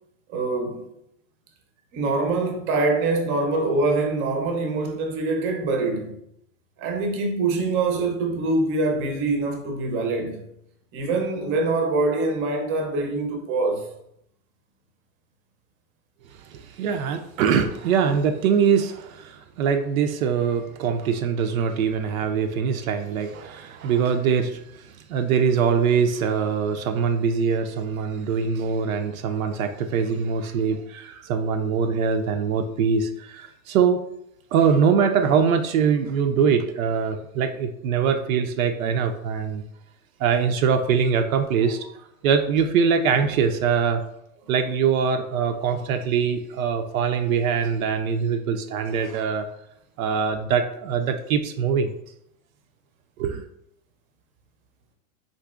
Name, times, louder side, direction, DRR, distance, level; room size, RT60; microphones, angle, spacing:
voice 1, 0.3-0.8 1.9-6.2 6.8-10.4 10.9-13.9, right 3 dB, 30° right, 0.6 m, -24 dB
voice 2, 16.4-34.0 34.5-39.6 40.2-41.9 42.2-44.0 44.5-49.5 50.0-51.9 53.2-53.5, right 6 dB, 75° right, 0.5 m, -23 dB
3.8 x 2.6 x 2.3 m
hypercardioid pair, 125°, 41 cm